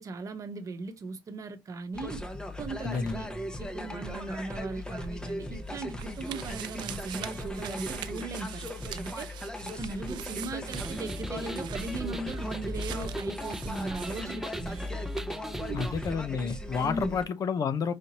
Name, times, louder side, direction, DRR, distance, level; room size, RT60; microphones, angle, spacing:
voice 1, 0.0-2.2 2.6-3.3 3.6-9.3 9.8-14.8 15.6-15.9 16.8-17.2, right 3 dB, 45° right, 0.9 m, -38 dB
sound 1, 1.9-17.2, left 1 dB, 10° left, 0.9 m, -38 dB
voice 2, 2.8-3.3 15.7-17.9, left 6 dB, 50° left, 0.6 m, -30 dB
sound 2, 5.2-14.9 15.1-15.2, right 12 dB, 80° right, 0.4 m, -44 dB
sound 3, 10.7-16.1, equal, 5° right, 0.5 m, -38 dB
5.0 x 2.7 x 2.9 m
cardioid pair, 95°, 8 cm